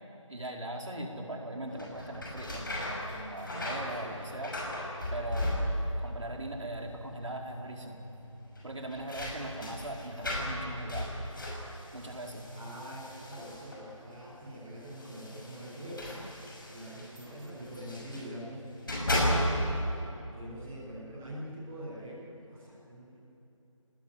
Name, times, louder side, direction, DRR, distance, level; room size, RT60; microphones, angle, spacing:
voice 1, 0.3-4.6 5.1-5.6 6.0-8.0 8.6-11.1 11.9-12.5, right 1 dB, 65° right, 1 dB, 4.6 m, -40 dB
sound 1, 1.7-6.1 6.4-7.0 7.3-7.4 8.5-13.9 14.8-18.3 18.7-19.9, left 1 dB, 40° left, 6.1 m, -35 dB
voice 2, 12.5-16.3 16.7-19.9 20.2-22.2 22.5-23.2, equal, 5° right, -10 dB, 0.8 m, -44 dB
29.0 x 19.0 x 10.0 m, 2.9 s
figure-of-eight pair, 175°, 17 cm